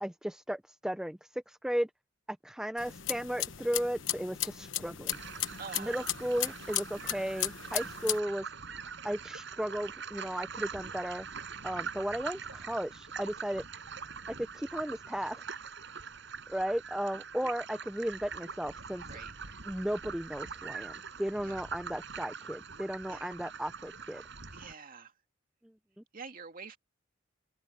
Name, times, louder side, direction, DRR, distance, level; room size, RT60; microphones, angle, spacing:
voice 1, 0.0-1.9 2.3-5.2 5.8-8.5 9.0-11.3 11.6-13.6 14.4-15.4 16.5-19.0 19.7-24.2 26.0-26.1, equal, 5° right, 0.4 m, -35 dB
sound 1, 2.8-8.2, left 13 dB, 65° left, 1.1 m, -36 dB
sound 2, 5.1-24.7, right 6 dB, 65° right, 5.6 m, -43 dB
voice 2, 5.6-6.1 19.0-19.3 21.4-21.6 23.0-23.3 24.5-25.1 26.1-26.8, right 5 dB, 45° right, 2.4 m, -46 dB
open air
head